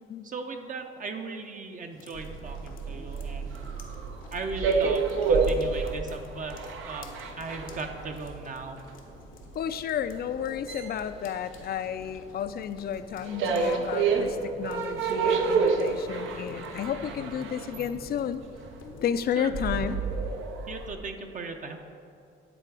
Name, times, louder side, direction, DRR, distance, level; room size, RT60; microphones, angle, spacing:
voice 1, 0.2-3.6 4.3-6.6 6.8-8.8 19.4-19.5 20.7-21.8, right 3 dB, 40° right, 4 dB, 0.6 m, -38 dB
sound 1, 1.9-19.1, left 4 dB, 80° left, 0.9 m, -49 dB
sound 2, 2.2-12.2 12.5-20.9, right 4 dB, 80° right, 0.7 m, -29 dB
voice 2, 9.5-18.4 19.0-20.0, left 8 dB, 50° left, 12 dB, 0.4 m, -32 dB
9.9 x 3.8 x 4.6 m, 2.6 s
cardioid pair, 90°, 20 cm